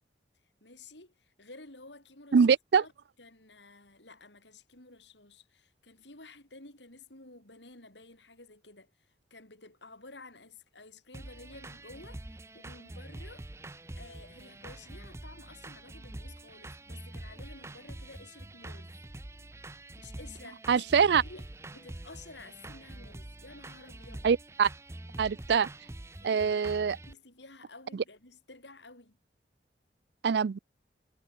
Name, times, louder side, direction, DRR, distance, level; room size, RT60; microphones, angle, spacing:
voice 1, 0.6-2.5 2.7-2.9 3.2-13.5 13.9-19.0 20.0-21.5 21.7-24.3 26.1-29.2, left 3 dB, 80° left, 8.0 m, -52 dB
voice 2, 2.3-2.8 20.7-21.2 24.2-24.7 25.2-25.7 26.2-27.0 30.2-30.6, right 6 dB, 70° right, 0.4 m, -24 dB
sound 1, 11.1-27.1, right 1 dB, 15° right, 0.6 m, -45 dB
head